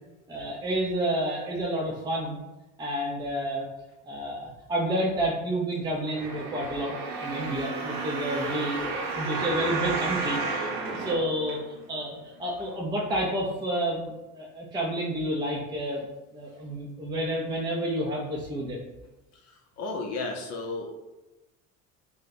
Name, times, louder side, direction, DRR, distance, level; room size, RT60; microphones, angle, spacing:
voice 1, 0.3-2.4 2.8-3.7 4.0-10.4 10.9-16.1 16.3-18.8, right 1 dB, 15° right, -2 dB, 0.4 m, -30 dB
sound 1, 6.1-12.0 12.6-12.7, right 3 dB, 55° right, 0.6 m, -32 dB
voice 2, 19.3-21.0, left 3 dB, 50° left, 2 dB, 0.5 m, -35 dB
2.7 x 2.1 x 3.9 m, 1.1 s
cardioid pair, 115°, 33 cm